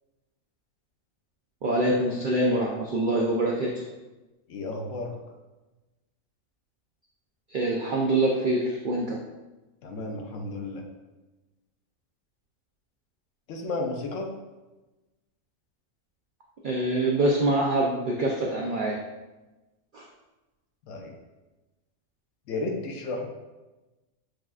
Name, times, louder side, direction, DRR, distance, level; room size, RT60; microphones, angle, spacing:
voice 1, 1.6-3.7 7.5-9.2 16.6-19.0 19.9-20.0, right 1 dB, 70° right, -2 dB, 0.4 m, -25 dB
voice 2, 4.5-5.1 9.8-10.8 13.5-14.3 20.9-21.1 22.5-23.3, left 2 dB, 70° left, 2 dB, 0.9 m, -32 dB
6.2 x 2.4 x 2.3 m, 1.1 s
omnidirectional pair, 1.4 m